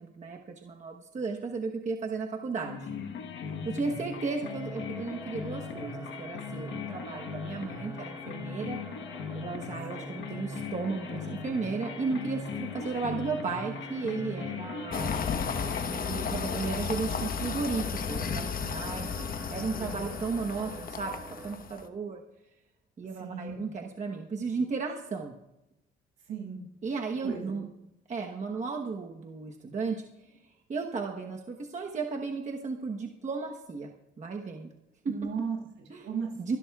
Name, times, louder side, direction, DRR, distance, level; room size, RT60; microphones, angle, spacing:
voice 1, 0.0-2.9 3.6-8.8 9.3-15.2 15.9-21.2 21.4-22.2 23.0-25.3 26.8-27.7 28.1-30.4 30.7-33.9 34.2-34.7 35.0-35.1 35.9-36.1 36.5-36.6, right 4 dB, 35° right, 1 dB, 1.1 m, -34 dB
sound 1, 2.6-15.8, left 5 dB, 75° left, 1.2 m, -39 dB
voice 2, 3.5-4.0 9.9-10.1 19.7-20.0 23.1-23.7 26.3-26.6 27.2-27.6 35.0-36.6, right 5 dB, 80° right, -1 dB, 6.2 m, -37 dB
sound 2, 4.4-21.6, right 2 dB, 15° right, 1.9 m, -48 dB
sound 3, 14.9-21.8, left 6 dB, 45° left, 1.0 m, -34 dB
23.5 x 12.0 x 2.4 m, 0.89 s
cardioid pair, 90°, 20 cm